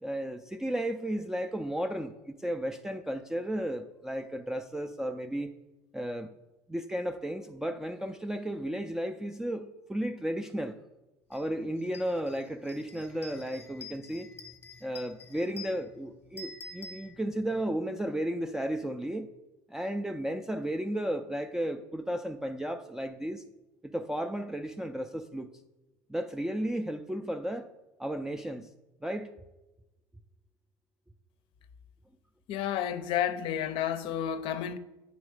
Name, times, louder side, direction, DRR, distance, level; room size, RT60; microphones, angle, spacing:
voice 1, 0.0-5.5 5.9-6.3 6.7-10.8 11.3-14.3 14.8-19.3 19.7-23.4 23.8-25.5 26.1-27.7 28.0-28.7 29.0-29.3, right 1 dB, 5° right, 0.3 m, -34 dB
sound 1, 11.3-11.5 11.8-17.6, left 3 dB, 25° left, 0.7 m, -48 dB
voice 2, 32.5-34.8, left 10 dB, 60° left, 0.5 m, -31 dB
8.5 x 4.0 x 4.8 m
supercardioid pair, 105°, 10 cm